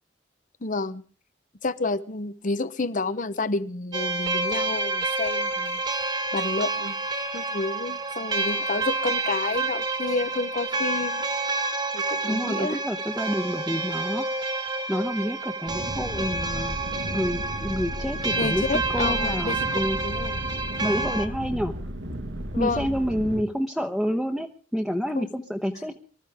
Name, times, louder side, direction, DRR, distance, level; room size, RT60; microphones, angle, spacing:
voice 1, 0.6-1.0 1.6-5.8 6.3-7.0 7.3-11.2 11.9-12.8 18.4-20.4 22.5-23.0 25.1-25.3, left 3 dB, 45° left, 14 dB, 0.8 m, -30 dB
sound 1, 3.9-21.3, right 3 dB, 25° right, 1.4 m, -29 dB
voice 2, 12.2-14.5 14.9-16.8 17.1-18.7 18.9-20.0 20.8-21.7 22.6-26.0, equal, ahead, 3 dB, 0.9 m, -28 dB
sound 2, 15.7-23.4, equal, 90° right, 1.8 m, -34 dB
25.0 x 13.5 x 3.5 m, 0.40 s
head